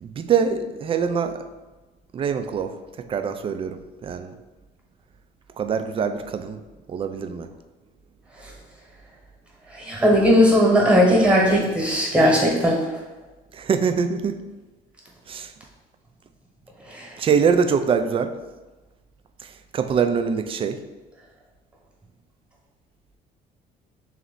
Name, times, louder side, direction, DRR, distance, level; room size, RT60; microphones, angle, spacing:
voice 1, 0.0-1.4 2.1-2.7 3.1-4.3 5.6-6.6 6.9-7.5 13.5-14.4 15.3-15.5 17.2-18.3 19.4-20.8, right 6 dB, 35° right, 8 dB, 0.3 m, -24 dB
voice 2, 9.7-12.8 16.9-17.1, equal, 5° right, -2 dB, 1.1 m, -17 dB
3.2 x 3.0 x 4.0 m, 1.2 s
cardioid pair, 110°, 17 cm